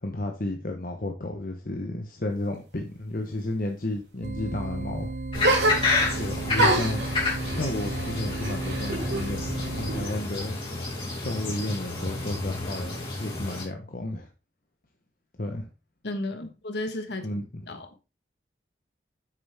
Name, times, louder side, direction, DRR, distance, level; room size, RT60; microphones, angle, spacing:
voice 1, 0.0-5.1 6.2-7.0 7.5-10.6 11.2-14.3 15.4-15.7 17.2-17.8, left 1 dB, 50° left, 1.0 m, -32 dB
sound 1, 4.2-10.1, right 2 dB, 50° right, 0.5 m, -34 dB
sound 2, 5.3-13.6, left 3 dB, 30° left, 3.4 m, -30 dB
sound 3, 5.4-6.2 6.6-9.3 9.6-10.4, right 1 dB, 75° right, 3.0 m, -27 dB
voice 2, 16.0-17.3 17.7-17.9, left 2 dB, 70° left, 1.4 m, -33 dB
8.6 x 6.9 x 3.5 m
head